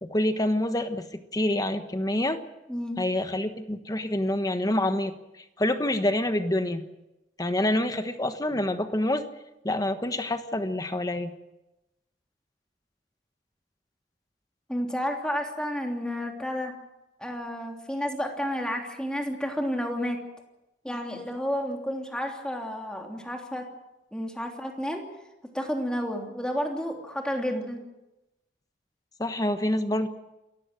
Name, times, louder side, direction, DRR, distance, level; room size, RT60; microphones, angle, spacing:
voice 1, 0.0-2.4 3.0-5.1 5.6-6.8 7.4-9.2 9.6-11.3 29.2-30.1, left 1 dB, 20° left, 8 dB, 1.3 m, -27 dB
voice 2, 2.7-3.0 14.7-16.7 17.2-20.2 20.8-23.7 24.1-25.0 25.5-27.8, equal, 5° left, 2 dB, 3.1 m, -31 dB
28.0 x 15.0 x 7.8 m, 0.94 s
head